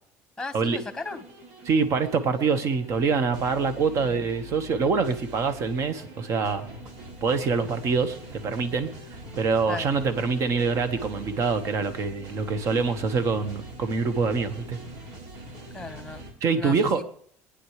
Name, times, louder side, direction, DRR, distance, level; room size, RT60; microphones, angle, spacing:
voice 1, 0.4-1.2 9.7-9.9 15.7-16.2 16.5-17.1, left 3 dB, 5° left, 9 dB, 1.4 m, -37 dB
sound 1, 0.6-16.3, right 1 dB, 85° right, 2.6 m, -43 dB
voice 2, 1.7-6.6 7.2-8.9 9.4-14.8 16.4-17.0, right 5 dB, 50° right, 10 dB, 1.3 m, -25 dB
24.5 x 9.8 x 3.3 m, 0.62 s
cardioid pair, 115°, 6 cm